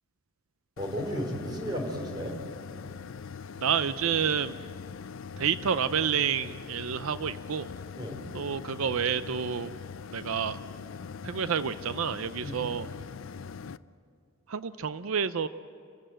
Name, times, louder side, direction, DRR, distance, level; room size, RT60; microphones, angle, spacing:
sound 1, 0.8-13.8, left 6 dB, 65° left, 0.5 m, -42 dB
voice 1, 0.8-2.4 8.0-8.2 12.4-12.6, equal, 20° right, 1 dB, 3.7 m, -34 dB
voice 2, 3.6-4.6 5.4-7.7 8.3-9.7 10.1-10.6 11.2-12.9 14.5-15.5, right 7 dB, 70° right, 13 dB, 0.6 m, -29 dB
29.0 x 16.5 x 7.8 m, 2.5 s
head